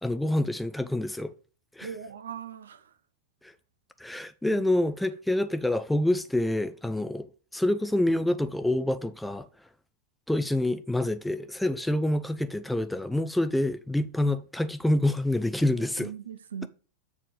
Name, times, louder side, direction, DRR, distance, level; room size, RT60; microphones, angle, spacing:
voice 1, 0.0-1.3 1.8-1.9 3.4-3.5 4.0-7.3 7.5-9.5 10.3-16.1, left 1 dB, 5° left, 0.5 m, -27 dB
voice 2, 1.8-2.9 4.4-4.6 15.6-16.7, right 7 dB, 65° right, 0.7 m, -40 dB
7.3 x 4.2 x 5.0 m
figure-of-eight pair, 90°, 0 cm